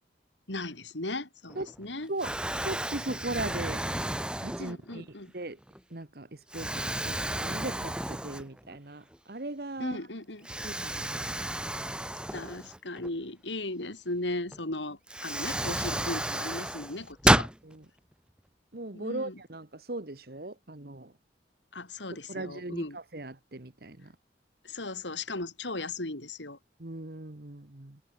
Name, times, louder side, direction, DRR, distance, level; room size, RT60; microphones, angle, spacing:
voice 1, 0.5-2.1 4.6-5.3 9.8-10.5 12.3-17.5 18.9-19.4 21.7-23.0 24.6-26.6, left 2 dB, 90° left, 3.9 m, -37 dB
Explosion, 1.5-1.9 2.2-5.0 5.6-5.8 6.5-8.8 9.1-9.2 10.4-13.1 14.5-14.6 15.1-17.6, right 1 dB, 5° right, 2.1 m, -31 dB
voice 2, 2.6-3.8 4.4-5.6 5.9-10.0 10.6-11.5 17.6-17.8 18.7-21.1 22.1-24.1 26.8-28.0, right 2 dB, 55° right, 1.5 m, -39 dB
head